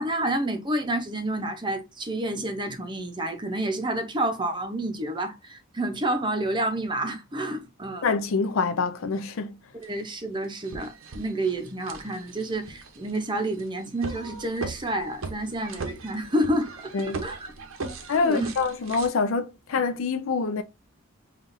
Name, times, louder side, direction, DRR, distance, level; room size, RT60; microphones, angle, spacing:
voice 1, 0.0-8.1 9.7-16.9 17.2-17.5 17.8-17.9 18.2-18.5, right 1 dB, 20° right, 0.6 m, -29 dB
voice 2, 8.0-9.6 16.9-17.2 18.1-20.6, left 4 dB, 75° left, 0.4 m, -26 dB
sound 1, 9.8-9.9 10.4-19.1, right 3 dB, 85° right, 0.8 m, -39 dB
5.5 x 2.4 x 2.5 m
head